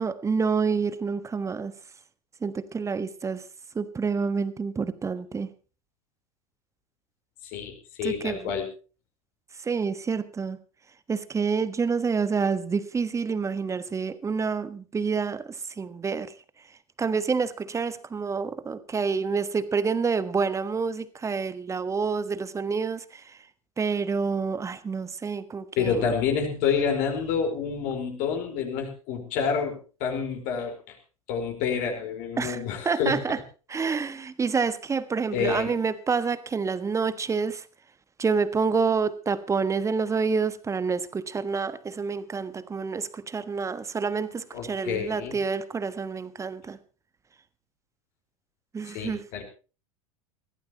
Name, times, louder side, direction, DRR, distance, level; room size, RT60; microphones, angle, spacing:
voice 1, 0.0-1.7 2.4-3.4 3.7-5.5 8.0-8.5 9.6-10.6 11.1-16.4 16.7-23.4 23.8-26.1 32.4-33.4 33.7-37.7 38.2-46.8 48.7-49.2, right 5 dB, 15° right, 1.3 m, -28 dB
voice 2, 7.4-8.7 25.8-31.0 31.3-33.2 35.3-35.7 44.5-45.4 48.9-49.4, left 6 dB, 45° left, 4.6 m, -28 dB
22.0 x 15.5 x 3.0 m
figure-of-eight pair, 85°, 18 cm